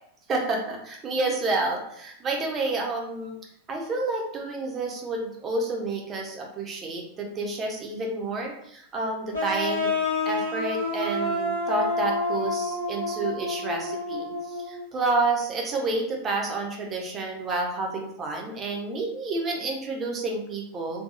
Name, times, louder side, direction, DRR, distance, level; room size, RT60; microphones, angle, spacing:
voice 1, 0.3-3.4 3.7-9.9 10.2-21.0, right 3 dB, 25° right, 1 dB, 0.6 m, -29 dB
sound 1, 9.3-14.8, left 2 dB, 80° left, 1.0 m, -28 dB
2.8 x 2.2 x 2.4 m, 0.71 s
figure-of-eight pair, 90°, 0 cm